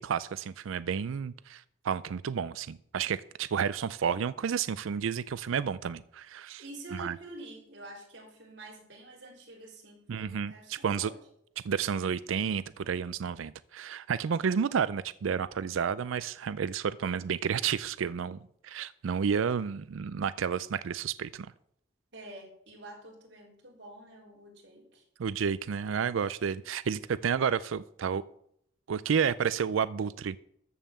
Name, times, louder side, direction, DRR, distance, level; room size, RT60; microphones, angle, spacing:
voice 1, 0.0-6.6 6.9-7.1 10.1-11.1 11.6-18.4 18.6-21.5 25.2-28.2 28.9-30.4, right 7 dB, 85° right, 17 dB, 0.4 m, -31 dB
voice 2, 6.6-11.2 22.1-25.0, right 2 dB, 60° right, -3 dB, 3.9 m, -47 dB
14.0 x 5.6 x 7.4 m, 0.72 s
head